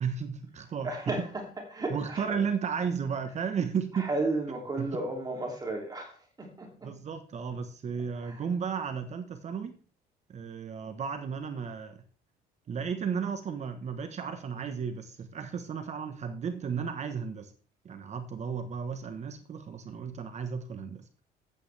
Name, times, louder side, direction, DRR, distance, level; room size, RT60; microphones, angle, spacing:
voice 1, 0.0-1.3 1.9-4.1 4.8-4.9 6.8-9.7 10.3-12.0 12.7-17.5 17.8-21.2, right 6 dB, 40° right, 8 dB, 1.2 m, -34 dB
voice 2, 0.8-1.4 1.7-2.4 4.0-6.9 8.2-8.4, right 2 dB, 25° right, 1 dB, 2.8 m, -33 dB
13.5 x 8.9 x 3.4 m, 0.41 s
cardioid pair, 110°, 17 cm